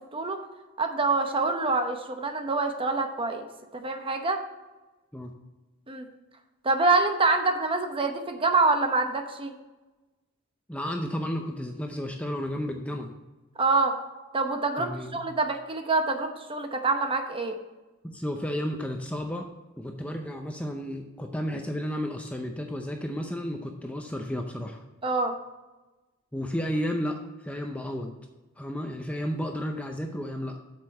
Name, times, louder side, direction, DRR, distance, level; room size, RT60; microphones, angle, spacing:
voice 1, 0.8-3.5 3.7-4.4 5.9-6.1 6.6-9.5 13.6-13.9 14.3-17.6 25.0-25.3, right 3 dB, 25° right, 6 dB, 0.8 m, -26 dB
voice 2, 10.7-13.1 14.8-15.2 18.0-19.5 19.8-24.8 26.3-28.1 28.6-30.6, equal, 5° left, 3 dB, 0.6 m, -32 dB
7.9 x 6.8 x 4.2 m, 1.2 s
head